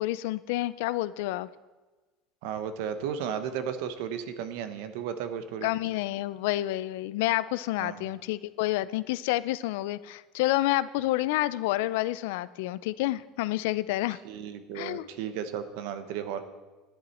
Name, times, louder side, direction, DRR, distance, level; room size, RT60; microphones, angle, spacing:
voice 1, 0.0-1.5 5.6-14.2 14.7-15.1, left 16 dB, 75° left, 17 dB, 0.4 m, -29 dB
voice 2, 2.4-5.7 7.8-8.1 14.2-16.4, right 8 dB, 65° right, 10 dB, 0.9 m, -34 dB
11.5 x 10.5 x 4.2 m, 1.2 s
cardioid pair, 180°, 0 cm